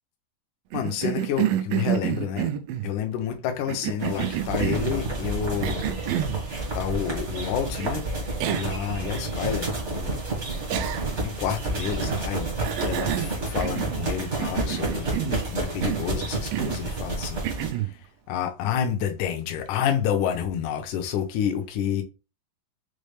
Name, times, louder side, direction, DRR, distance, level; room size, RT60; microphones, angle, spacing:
voice 1, 0.7-2.5 2.8-5.8 6.7-8.1 8.5-10.1 11.2-12.5 12.8-22.0, left 9 dB, 75° left, 2.1 m, -29 dB
Cough, 0.7-2.9 3.7-5.0 5.6-6.4 7.8-7.9 8.4-8.8 9.1-9.2 10.7-11.3 11.8-12.2 12.6-14.1 14.4-15.5 15.8-16.1 16.5-16.8 17.4-17.9, right 11 dB, 80° right, 2.2 m, -29 dB
sound 1, 4.0-17.7, right 2 dB, 45° right, 0.9 m, -30 dB
6.4 x 2.4 x 3.3 m
omnidirectional pair, 4.1 m